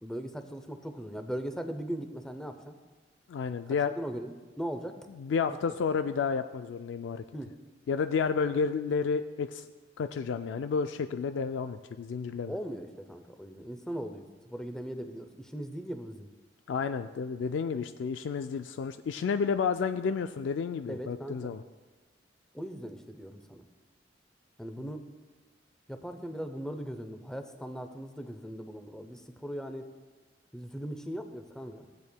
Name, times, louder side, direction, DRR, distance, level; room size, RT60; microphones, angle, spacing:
voice 1, 0.0-2.7 3.7-5.0 7.3-7.6 12.5-16.3 20.9-21.6 22.5-23.6 24.6-25.1 25.9-29.9 30.5-31.9, equal, 5° left, 7 dB, 0.5 m, -39 dB
voice 2, 3.3-3.9 5.2-7.2 7.9-9.6 10.0-12.5 16.7-21.6, left 5 dB, 80° left, 9 dB, 0.3 m, -31 dB
15.5 x 8.4 x 2.2 m, 1.3 s
head